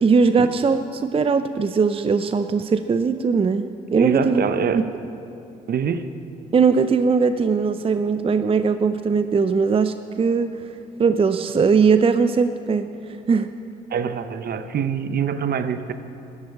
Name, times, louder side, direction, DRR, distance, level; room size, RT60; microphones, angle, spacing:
voice 1, 0.0-4.4 4.7-4.8 6.5-10.6 11.0-12.9 13.3-13.5, right 5 dB, 30° right, 10 dB, 0.6 m, -20 dB
voice 2, 4.0-4.8 5.7-6.0 13.9-15.9, right 7 dB, 50° right, 11 dB, 0.9 m, -24 dB
13.0 x 8.8 x 8.5 m, 2.8 s
hypercardioid pair, 55°, 20 cm